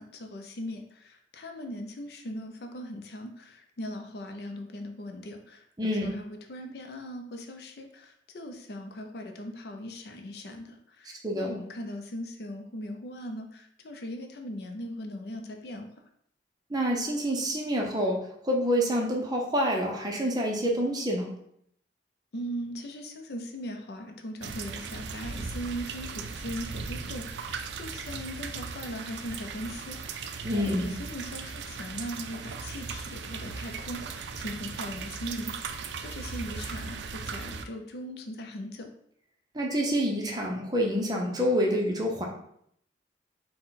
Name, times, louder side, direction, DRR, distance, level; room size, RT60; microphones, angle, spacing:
voice 1, 0.0-15.9 22.3-38.9, equal, 65° left, 4 dB, 0.5 m, -39 dB
voice 2, 5.8-6.1 11.2-11.5 16.7-18.2 18.4-21.3 30.4-30.9 39.5-42.3, equal, 25° right, -1 dB, 0.6 m, -27 dB
sound 1, 24.4-37.6, right 5 dB, 80° right, 0.3 m, -38 dB
4.0 x 2.2 x 3.9 m, 0.70 s
head